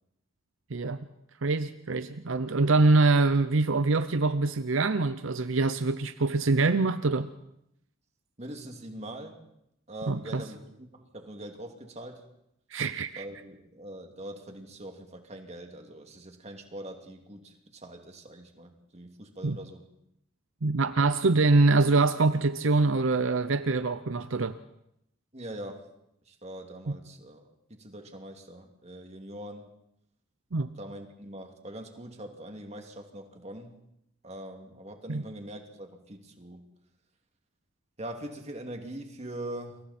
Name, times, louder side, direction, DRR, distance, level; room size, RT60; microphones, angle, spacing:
voice 1, 1.4-7.3 10.1-10.4 12.7-13.2 19.4-19.6 20.6-24.6 26.9-27.0 30.5-30.7 35.1-35.2, right 3 dB, 75° right, 12 dB, 0.7 m, -24 dB
voice 2, 8.4-9.4 9.9-12.2 13.2-19.9 25.3-25.9 26.3-27.5 27.8-29.6 30.8-33.8 34.2-36.6 38.0-39.8, right 1 dB, 35° right, 4 dB, 2.5 m, -42 dB
29.0 x 23.0 x 4.3 m, 0.78 s
head